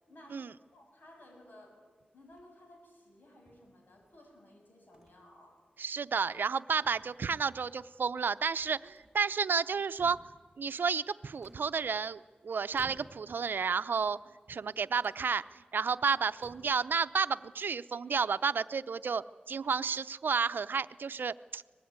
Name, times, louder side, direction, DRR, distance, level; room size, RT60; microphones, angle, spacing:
voice 1, 0.1-1.8 2.1-5.6, left 1 dB, 65° left, 3 dB, 7.3 m, -57 dB
sound 1, 2.2-2.7 3.5-4.2 4.9-5.2 5.6-5.7 6.2-6.6 6.8-7.5 8.6-9.3 9.7-10.4 11.4-12.2 12.7-13.4 13.9-14.6 15.0-15.2 15.8-15.9 16.3-16.8, right 1 dB, 5° right, 5.6 m, -58 dB
voice 2, 5.8-10.2 10.6-14.2 14.5-15.4 15.7-21.6, right 5 dB, 80° right, 13 dB, 0.7 m, -31 dB
24.0 x 20.5 x 9.5 m, 1.4 s
cardioid pair, 50°, 3 cm